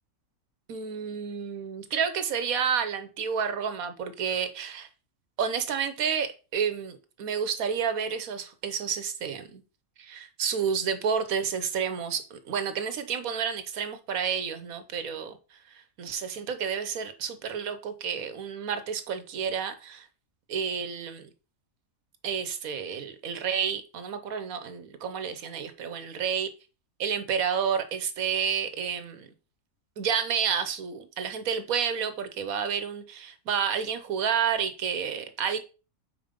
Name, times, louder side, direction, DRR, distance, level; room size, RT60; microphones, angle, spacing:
voice 1, 0.7-4.9 5.4-9.6 10.0-20.1 20.5-21.3 22.2-26.5 27.0-29.3 30.0-35.6, right 7 dB, 85° right, 1.4 m, -30 dB
5.3 x 4.3 x 5.1 m
omnidirectional pair, 1.4 m